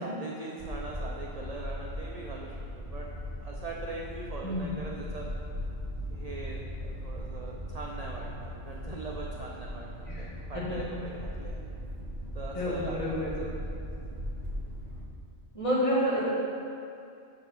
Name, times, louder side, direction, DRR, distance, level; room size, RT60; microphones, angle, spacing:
voice 1, 0.0-3.1 3.4-5.3 6.1-11.6 12.3-13.5, right 3 dB, 45° right, -2 dB, 0.5 m, -41 dB
sound 1, 0.6-15.0, equal, 30° right, 0.9 m, -38 dB
voice 2, 4.4-4.7 10.1-10.3 10.5-10.8 12.5-13.3 15.5-16.2, equal, 25° left, -8 dB, 1.8 m, -29 dB
6.7 x 4.6 x 5.8 m, 2.5 s
omnidirectional pair, 1.2 m